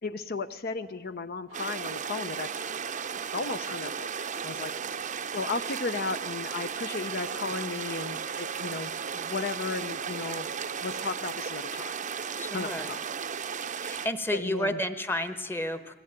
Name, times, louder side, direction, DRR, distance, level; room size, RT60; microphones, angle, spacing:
voice 1, 0.0-2.5 2.9-3.0 3.3-4.1 4.4-4.7 5.3-10.5 10.8-12.0 12.5-13.0 14.3-14.8, left 4 dB, 55° left, 10 dB, 0.7 m, -35 dB
sound 1, 1.5-14.1, right 7 dB, 40° right, 0.7 m, -35 dB
sound 2, 1.5-11.1, right 5 dB, 75° right, 0.8 m, -48 dB
voice 2, 12.4-12.9 13.8-15.9, left 1 dB, 10° left, 11 dB, 1.0 m, -31 dB
20.5 x 15.5 x 8.9 m, 1.4 s
head